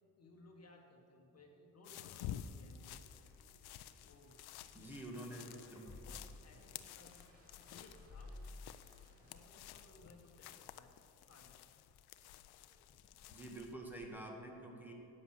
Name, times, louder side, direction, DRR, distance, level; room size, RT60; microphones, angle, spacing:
voice 1, 0.2-3.1 4.0-4.4 4.7-7.3 7.6-8.5 9.2-10.9 11.3-11.6, left 2 dB, 40° left, 1 dB, 1.7 m, -62 dB
sound 1, 1.8-13.7, left 10 dB, 90° left, 0.6 m, -52 dB
Meow, 2.8-14.1, left 2 dB, 20° left, 1.6 m, -59 dB
sound 2, 3.0-9.4, right 1 dB, 35° right, 2.4 m, -70 dB
voice 2, 4.7-5.9 13.3-14.9, right 1 dB, 5° right, 0 dB, 2.0 m, -48 dB
11.0 x 9.0 x 7.6 m, 2.9 s
cardioid pair, 105°, 38 cm